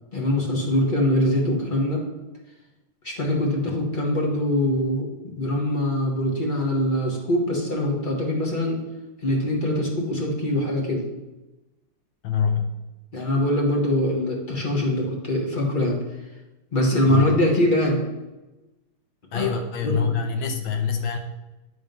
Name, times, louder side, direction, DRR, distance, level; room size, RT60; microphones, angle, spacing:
voice 1, 0.1-2.0 3.0-8.8 9.2-11.0 13.1-16.0 16.7-18.0 19.3-19.5 19.8-19.9, left 1 dB, 30° left, -1 dB, 1.0 m, -23 dB
voice 2, 12.2-12.7 17.1-17.3 19.3-21.2, left 6 dB, 70° left, 5 dB, 1.4 m, -25 dB
9.9 x 3.7 x 5.2 m, 1.1 s
omnidirectional pair, 2.4 m